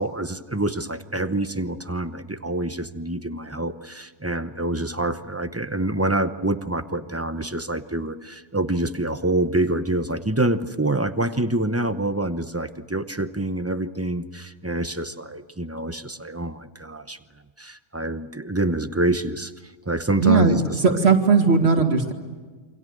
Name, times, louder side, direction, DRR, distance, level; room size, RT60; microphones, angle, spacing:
voice 1, 0.0-17.2 17.6-21.0, right 2 dB, 15° right, 9 dB, 0.8 m, -26 dB
voice 2, 20.2-22.1, right 4 dB, 60° right, 4 dB, 2.5 m, -18 dB
28.0 x 25.0 x 8.0 m, 1.4 s
omnidirectional pair, 1.2 m